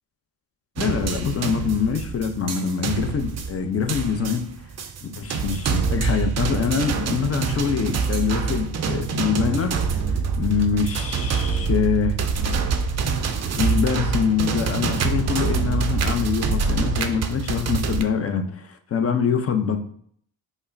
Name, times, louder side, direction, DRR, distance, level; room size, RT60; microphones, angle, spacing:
voice 1, 0.8-4.5 5.0-12.2 13.6-19.8, left 6 dB, 35° left, 7 dB, 0.5 m, -24 dB
sound 1, 0.8-18.0, right 5 dB, 40° right, 0.4 m, -25 dB
5.2 x 2.0 x 2.5 m, 0.62 s
cardioid pair, 75°, 44 cm